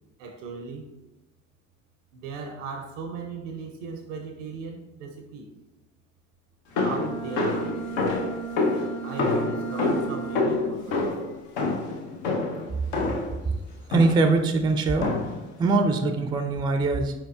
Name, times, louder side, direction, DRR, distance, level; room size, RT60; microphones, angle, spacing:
voice 1, 0.2-0.9 2.1-5.5 6.8-7.7 9.0-11.0, right 5 dB, 70° right, 4 dB, 0.5 m, -37 dB
Bowed string instrument, 6.7-10.8, right 5 dB, 45° left, 1.4 m, -35 dB
sound 1, 6.8-13.4 13.9-14.4 15.0-15.5, left 3 dB, 65° left, 0.7 m, -27 dB
voice 2, 13.9-15.2 15.6-17.1, right 3 dB, 10° right, 7 dB, 0.4 m, -22 dB
4.7 x 4.4 x 2.3 m, 1.0 s
figure-of-eight pair, 50°, 38 cm